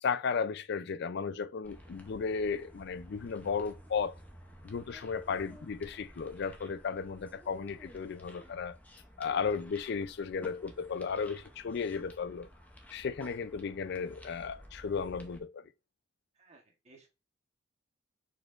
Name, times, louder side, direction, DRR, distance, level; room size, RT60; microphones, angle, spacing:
voice 1, 0.0-4.1 4.6-8.8 9.2-12.5 12.9-15.6, left 5 dB, 55° left, 0.4 m, -34 dB
sound 1, 1.6-15.4, equal, 10° left, 0.6 m, -53 dB
voice 2, 16.4-17.1, right 3 dB, 35° right, 1.2 m, -59 dB
4.7 x 4.4 x 2.5 m
head